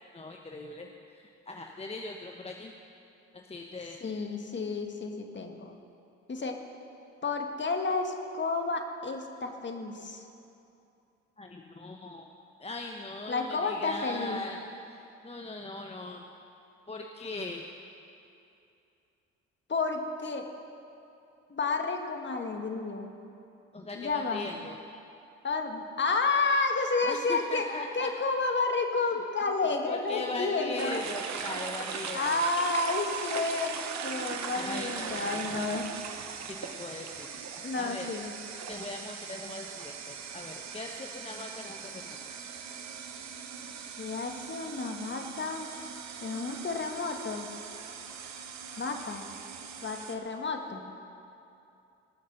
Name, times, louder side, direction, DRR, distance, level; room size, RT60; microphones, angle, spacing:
voice 1, 0.1-0.9 1.5-2.7 3.3-4.0 11.4-12.3 12.6-14.6 14.9-16.3 16.9-17.6 23.7-24.8 27.0-28.1 29.9-32.4 34.5-35.8 36.5-38.1 38.7-42.2, left 2 dB, 20° left, 2 dB, 0.9 m, -40 dB
voice 2, 4.0-5.7 6.3-6.5 7.2-10.2 13.3-14.4 19.7-20.5 21.5-23.1 24.0-24.5 25.4-27.7 27.9-31.0 32.1-35.9 37.6-38.3 44.0-45.6 46.2-47.5 48.8-49.3 49.8-50.8, left 3 dB, 35° left, 4 dB, 1.7 m, -31 dB
sound 1, 30.8-50.2, right 6 dB, 60° right, 1.2 m, -40 dB
19.0 x 6.6 x 6.8 m, 2.7 s
hypercardioid pair, 60°, 32 cm